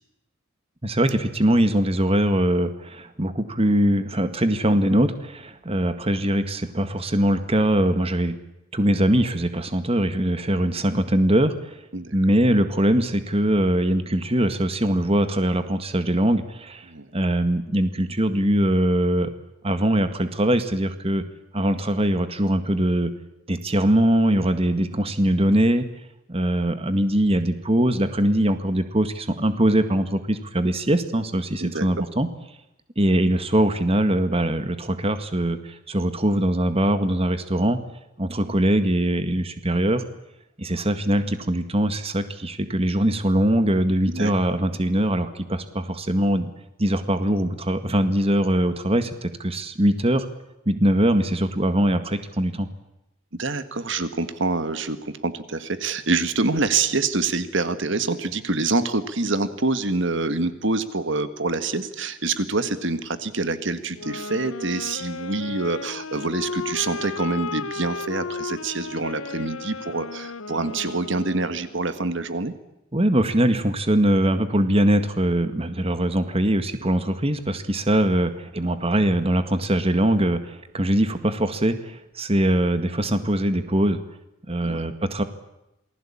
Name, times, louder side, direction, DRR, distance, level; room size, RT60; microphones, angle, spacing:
voice 1, 0.8-8.4 8.7-11.8 12.1-19.3 19.6-21.2 21.5-23.1 23.5-25.9 26.3-32.3 33.0-37.8 38.2-40.0 40.6-46.5 46.8-50.3 50.7-52.7 72.9-84.0 84.5-85.2, right 1 dB, 30° right, 10 dB, 1.9 m, -22 dB
voice 2, 31.6-32.0 44.1-44.3 53.4-72.5 84.6-84.8, right 3 dB, 60° right, 11 dB, 1.8 m, -26 dB
sound 1, 63.9-71.8, left 4 dB, 85° left, 1.0 m, -34 dB
28.0 x 20.5 x 8.7 m, 0.89 s
head